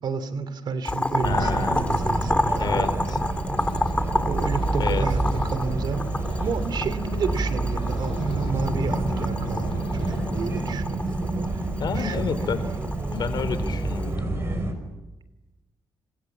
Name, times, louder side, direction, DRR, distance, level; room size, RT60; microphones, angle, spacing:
voice 1, 0.0-2.9 4.3-6.0 6.4-11.6 11.9-12.6, right 5 dB, 60° right, 13 dB, 2.9 m, -31 dB
Boiling, 0.8-14.1, left 2 dB, 15° left, 1.9 m, -30 dB
voice 2, 1.2-1.9 2.6-3.2 4.8-5.1 11.8-12.6 13.1-14.8, left 6 dB, 60° left, 12 dB, 4.0 m, -30 dB
sound 1, 1.2-14.7, right 2 dB, 30° right, 5.8 m, -28 dB
sound 2, 3.6-10.6, left 7 dB, 85° left, 5.6 m, -41 dB
29.5 x 26.5 x 7.4 m, 1.0 s
cardioid pair, 100°, 8 cm